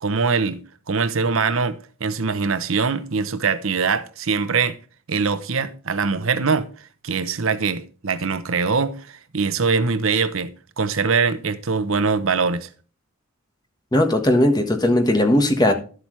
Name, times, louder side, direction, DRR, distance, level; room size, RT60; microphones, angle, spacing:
voice 1, 0.0-0.6 0.9-4.8 5.1-10.5 10.8-12.7, right 5 dB, 70° right, 0.8 m, -22 dB
voice 2, 13.9-15.7, left 1 dB, 20° left, 1.4 m, -18 dB
12.0 x 7.8 x 3.2 m
head